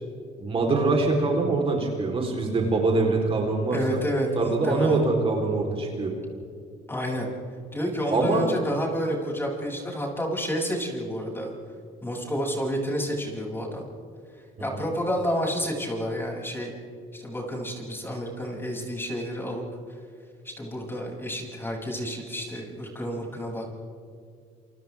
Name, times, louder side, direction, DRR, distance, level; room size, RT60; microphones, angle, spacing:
voice 1, 0.4-4.0 4.3-6.1 8.1-8.5 14.6-14.9, right 3 dB, 35° right, 0 dB, 4.0 m, -24 dB
voice 2, 3.7-5.0 6.9-7.3 7.7-11.5 12.0-13.8 14.6-16.7 17.1-19.6 20.4-23.7, equal, 15° left, -1 dB, 7.3 m, -30 dB
29.0 x 26.0 x 3.6 m, 2.4 s
cardioid pair, 110°, 17 cm